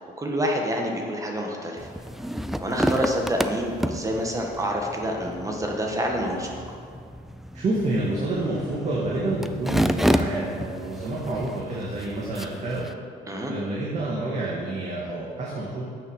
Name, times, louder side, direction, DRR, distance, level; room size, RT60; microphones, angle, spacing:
voice 1, 0.2-1.9 2.6-6.6 13.3-13.5, equal, 20° right, 1 dB, 1.5 m, -27 dB
sound 1, 1.8-12.9, equal, ahead, 0.4 m, -30 dB
voice 2, 7.5-12.9 13.5-15.8, right 2 dB, 45° right, -6 dB, 1.9 m, -28 dB
8.9 x 6.4 x 6.4 m, 2.2 s
cardioid pair, 110°, 17 cm